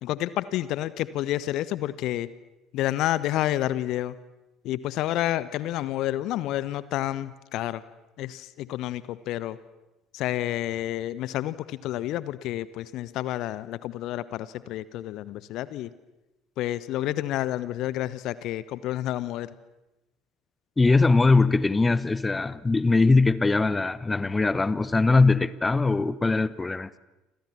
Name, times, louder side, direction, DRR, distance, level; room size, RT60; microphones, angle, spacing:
voice 1, 0.0-2.3 2.7-4.2 4.6-7.8 8.2-9.6 10.1-15.9 16.6-19.5, left 14 dB, 55° left, 18 dB, 1.0 m, -29 dB
voice 2, 20.8-27.0, left 3 dB, 15° left, 18 dB, 1.0 m, -21 dB
28.5 x 26.5 x 7.3 m, 0.99 s
figure-of-eight pair, 60°, 0 cm